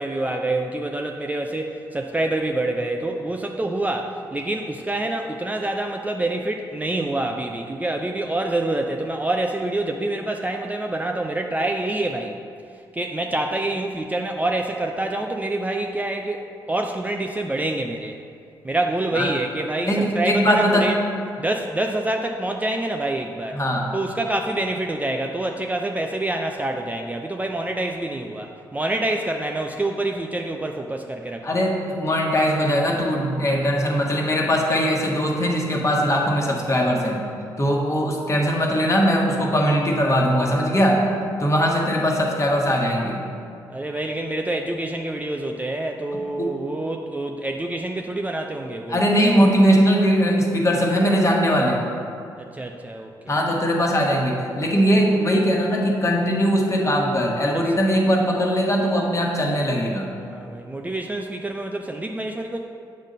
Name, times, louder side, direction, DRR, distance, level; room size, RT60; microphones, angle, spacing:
voice 1, 0.0-12.4 12.9-18.1 18.6-21.0 21.4-23.6 23.9-31.6 43.7-49.1 52.4-53.3 57.5-57.8 60.2-62.6, right 2 dB, 15° right, 2 dB, 0.5 m, -26 dB
voice 2, 19.9-20.9 23.6-23.9 31.4-37.2 37.6-41.0 41.4-43.2 46.4-46.5 48.9-51.8 53.3-60.1, equal, 30° left, -1 dB, 1.4 m, -20 dB
7.3 x 3.7 x 5.4 m, 2.5 s
hypercardioid pair, 50°, 10 cm